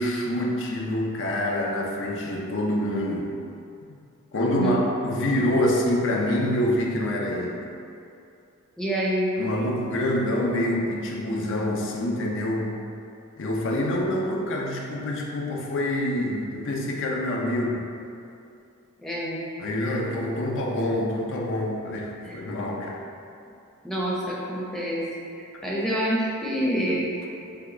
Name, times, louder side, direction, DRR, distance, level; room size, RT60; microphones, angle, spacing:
voice 1, 0.0-3.3 3.9-4.0 4.3-7.6 9.4-12.7 13.4-17.8 19.6-23.0, left 1 dB, 60° left, -1 dB, 0.6 m, -26 dB
voice 2, 8.8-9.3 19.0-19.4 22.2-22.4 23.8-25.0 25.6-27.0, right 1 dB, ahead, -6 dB, 0.6 m, -26 dB
5.5 x 2.3 x 3.8 m, 2.6 s
head